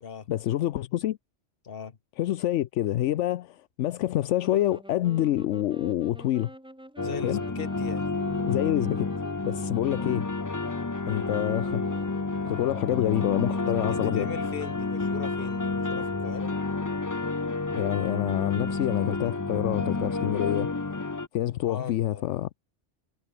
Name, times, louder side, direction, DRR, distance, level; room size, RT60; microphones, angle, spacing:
voice 1, 0.3-1.2 2.2-6.5 7.2-7.4 8.5-9.1 9.4-10.3 11.1-12.1 12.4-14.3 17.7-20.7 21.3-22.5, left 13 dB, 80° left, 0.9 m, -27 dB
voice 2, 1.6-2.0 7.0-8.1 13.5-16.5 21.7-22.3, left 6 dB, 50° left, 1.4 m, -39 dB
Wind instrument woodwind instrument, 4.3-14.0, right 1 dB, 5° right, 0.9 m, -48 dB
sound 1, 7.0-21.3, left 3 dB, 20° left, 0.6 m, -30 dB
omnidirectional pair, 1.2 m